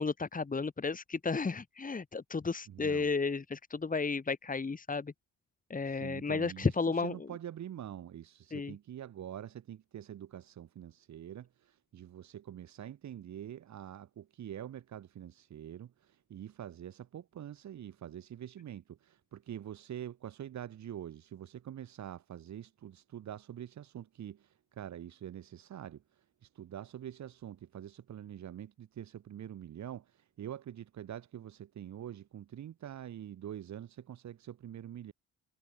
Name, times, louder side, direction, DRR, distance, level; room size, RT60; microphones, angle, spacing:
voice 1, 0.0-5.1 5.7-7.2 8.5-8.7, left 4 dB, 25° left, 3.0 m, -33 dB
voice 2, 2.7-3.1 5.9-35.1, right 10 dB, 65° right, 4.6 m, -45 dB
cardioid pair, 90°, 30 cm